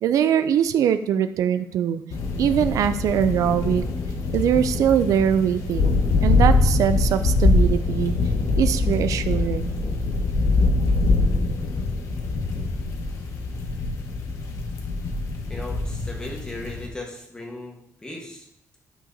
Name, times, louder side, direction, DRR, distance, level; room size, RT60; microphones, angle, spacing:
voice 1, 0.0-2.0 2.4-3.8 4.3-8.2 8.6-9.9, right 9 dB, 70° right, 11 dB, 0.4 m, -22 dB
sound 1, 2.1-16.8, left 3 dB, 70° left, 1.2 m, -23 dB
voice 2, 15.5-18.5, left 2 dB, 15° left, -1 dB, 1.3 m, -37 dB
10.5 x 5.8 x 2.7 m, 0.77 s
cardioid pair, 160°, 6 cm